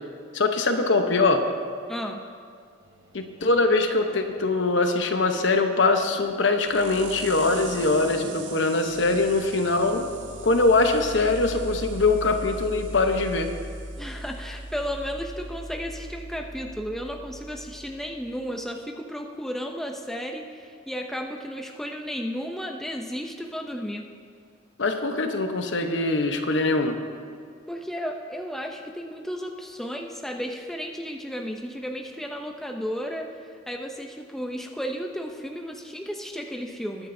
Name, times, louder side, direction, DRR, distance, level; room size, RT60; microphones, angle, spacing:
voice 1, 0.3-1.5 3.1-10.1 10.4-13.5 24.8-27.0, left 3 dB, 70° left, 5 dB, 0.9 m, -22 dB
voice 2, 1.9-2.2 14.0-24.1 27.7-37.1, equal, ahead, 2 dB, 0.6 m, -33 dB
sound 1, 2.8-18.8, right 2 dB, 70° right, 1.4 m, -40 dB
21.0 x 9.8 x 2.7 m, 2.2 s
head